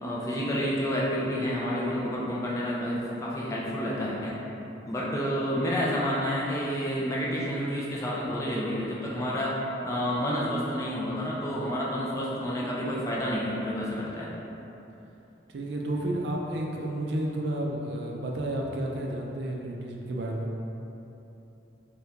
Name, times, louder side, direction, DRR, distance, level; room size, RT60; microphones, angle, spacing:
voice 1, 0.0-4.4 4.9-9.6 9.8-14.3, equal, 15° left, -6 dB, 0.3 m, -29 dB
voice 2, 15.5-20.5, right 1 dB, 65° right, -1 dB, 0.4 m, -31 dB
3.5 x 2.2 x 2.7 m, 3.0 s
head